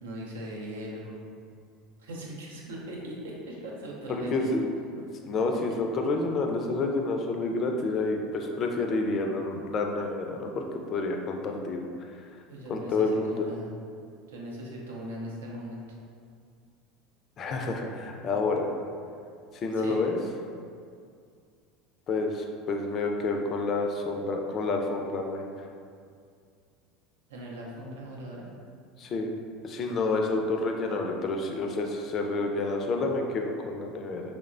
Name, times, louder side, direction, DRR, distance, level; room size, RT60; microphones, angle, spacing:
voice 1, 0.0-1.3 2.0-4.6 5.5-5.6 12.5-13.7 14.3-16.0 19.7-20.0 27.3-28.5, equal, 90° right, -3 dB, 0.5 m, -40 dB
voice 2, 4.1-4.6 4.9-11.8 12.1-12.2 12.7-13.5 17.4-18.7 19.5-20.2 22.1-25.7 29.0-29.3 29.6-34.2, left 3 dB, 45° left, 3 dB, 0.3 m, -29 dB
3.0 x 2.0 x 2.5 m, 2.3 s
hypercardioid pair, 90°, 0 cm